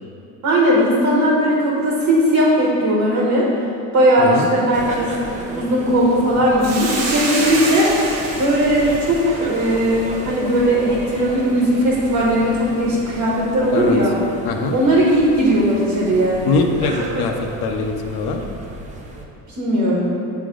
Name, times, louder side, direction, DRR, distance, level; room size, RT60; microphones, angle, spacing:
voice 1, 0.4-3.5 3.9-7.9 8.4-14.2 14.7-16.4 19.5-20.2, equal, 45° right, -4 dB, 1.3 m, -18 dB
voice 2, 4.2-4.5 13.7-14.0 14.4-14.8 16.5-18.4, left 4 dB, 80° left, 3 dB, 0.7 m, -22 dB
sound 1, 4.7-19.3, right 2 dB, 20° right, 0.6 m, -33 dB
Hiss, 6.6-11.1, right 2 dB, 70° right, 1.1 m, -28 dB
8.9 x 3.4 x 3.7 m, 2.7 s
cardioid pair, 140°, 38 cm